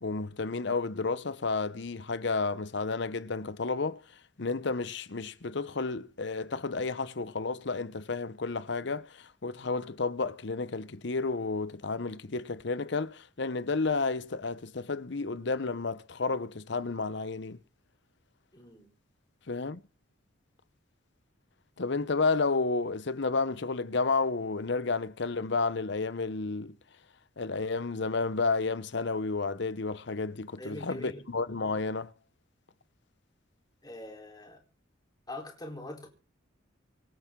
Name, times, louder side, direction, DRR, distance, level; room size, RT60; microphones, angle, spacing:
voice 1, 0.0-4.0 4.4-17.6 19.5-19.8 21.8-26.7 27.4-32.1, left 4 dB, 60° left, 0.8 m, -31 dB
voice 2, 18.5-18.9 30.6-31.2 33.8-34.6 35.3-36.1, left 1 dB, 20° left, 3.9 m, -43 dB
26.0 x 9.0 x 3.8 m
head